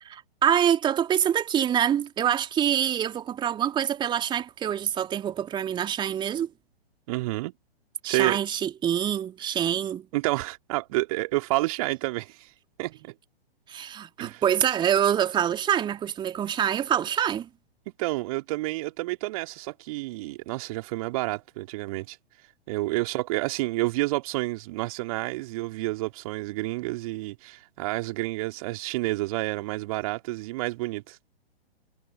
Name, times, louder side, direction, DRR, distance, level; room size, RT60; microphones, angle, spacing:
voice 1, 0.0-6.5 8.0-10.1 13.7-17.5, right 9 dB, 15° right, 2.4 m, -25 dB
voice 2, 7.1-7.5 8.0-8.4 10.1-12.5 12.8-13.1 14.2-14.4 18.0-22.2 22.7-31.2, right 20 dB, 35° right, 2.9 m, -29 dB
figure-of-eight pair, 120°, 31 cm